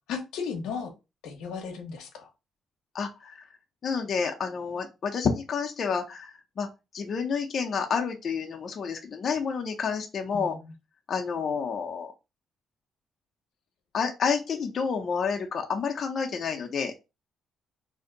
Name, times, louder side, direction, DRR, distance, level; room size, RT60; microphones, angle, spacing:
voice 1, 0.1-0.9 1.2-2.3 10.3-10.7, left 6 dB, 90° left, 5 dB, 0.7 m, -35 dB
voice 2, 2.9-3.4 3.8-6.7 6.9-10.5 11.1-12.1 13.9-16.9, left 6 dB, 50° left, 2 dB, 0.5 m, -29 dB
2.6 x 2.1 x 3.7 m, 0.26 s
cardioid pair, 90°, 0 cm